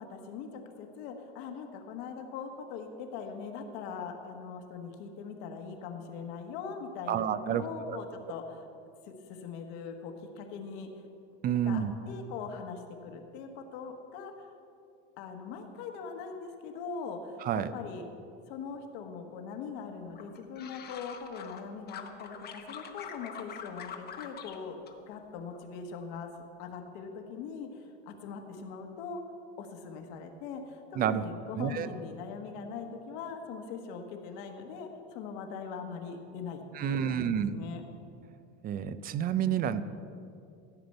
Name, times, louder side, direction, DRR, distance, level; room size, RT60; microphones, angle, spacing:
voice 1, 0.0-8.6 9.1-10.9 11.6-14.3 15.2-18.1 18.5-24.8 25.1-26.3 26.6-29.2 29.6-37.8, left 5 dB, 65° left, 4 dB, 1.5 m, -41 dB
voice 2, 7.1-8.0 11.4-11.9 17.4-17.7 30.9-31.2 31.5-31.9 36.7-37.5 38.6-39.8, right 9 dB, 30° right, 14 dB, 0.4 m, -29 dB
sound 1, 20.1-21.6 21.9-24.6 24.9-25.6 25.9-26.4, left 7 dB, 30° left, 0.9 m, -45 dB
14.0 x 5.1 x 7.9 m, 2.6 s
supercardioid pair, 135°, 33 cm